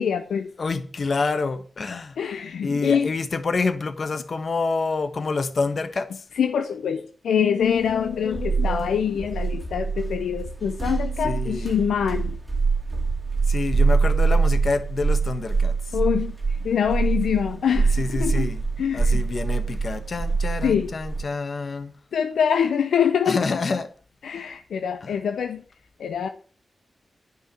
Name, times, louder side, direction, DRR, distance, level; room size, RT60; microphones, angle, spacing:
voice 1, 0.0-0.5 1.9-3.1 6.3-12.4 15.9-18.5 18.8-19.3 20.6-20.9 22.1-23.6 24.2-25.6 26.0-26.3, left 7 dB, 90° left, 0.6 m, -24 dB
voice 2, 0.6-2.2 2.6-6.2 11.2-11.7 13.5-16.0 18.0-18.6 18.9-21.9 23.3-23.9 25.0-25.1, left 4 dB, 60° left, 1.3 m, -27 dB
sound 1, 7.8-21.2, right 4 dB, 30° right, 2.3 m, -24 dB
10.5 x 5.5 x 7.7 m
cardioid pair, 45°, 0 cm